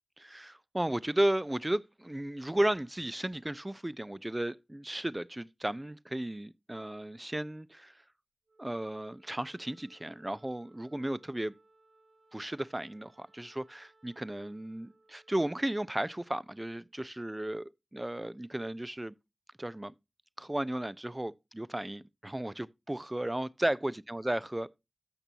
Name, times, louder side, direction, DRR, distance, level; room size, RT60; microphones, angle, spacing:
voice 1, 0.2-7.9 8.6-11.5 12.3-19.1 19.6-19.9 20.4-24.7, right 1 dB, 20° right, 0.5 m, -34 dB
Wind instrument woodwind instrument, 8.5-17.0, right 2 dB, 70° right, 5.9 m, -66 dB
13.5 x 6.0 x 2.7 m
cardioid pair, 40°, 0 cm